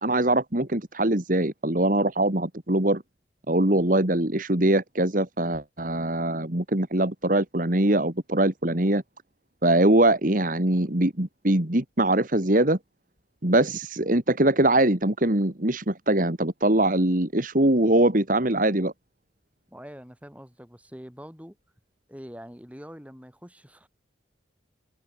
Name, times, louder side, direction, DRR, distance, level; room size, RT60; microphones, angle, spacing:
voice 1, 0.0-3.0 3.5-9.0 9.6-12.8 13.4-18.9, right 1 dB, 45° right, 2.2 m, -22 dB
voice 2, 19.7-21.6 22.1-23.9, equal, 5° right, 7.2 m, -44 dB
head